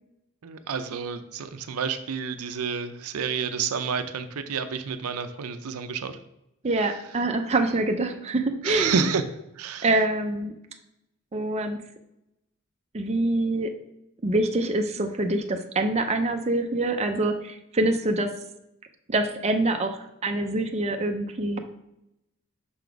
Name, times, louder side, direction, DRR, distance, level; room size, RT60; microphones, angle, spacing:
voice 1, 0.4-6.2 8.6-9.2 9.6-9.9, right 6 dB, 85° right, 9 dB, 0.5 m, -29 dB
voice 2, 6.6-9.0 9.8-10.5 11.3-11.8 12.9-13.7 14.2-18.3 19.1-21.6, right 2 dB, 30° right, 5 dB, 0.5 m, -25 dB
5.9 x 3.9 x 4.5 m, 0.83 s
head